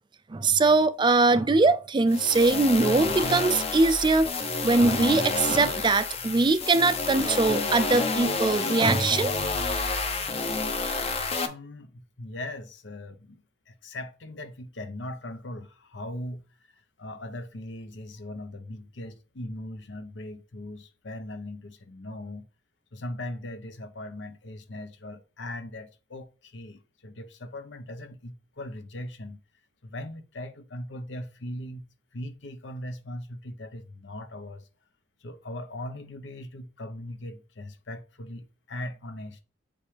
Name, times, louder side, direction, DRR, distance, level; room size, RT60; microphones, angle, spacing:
voice 1, 0.3-4.3 4.6-9.3, right 3 dB, 25° right, 0.4 m, -22 dB
sound 1, 2.1-11.5, left 3 dB, 30° left, 0.8 m, -29 dB
voice 2, 11.5-16.4 17.0-22.5 22.9-29.4 29.8-31.8 32.1-34.7 35.2-39.4, left 1 dB, 70° left, 0.9 m, -39 dB
7.2 x 5.2 x 3.3 m
head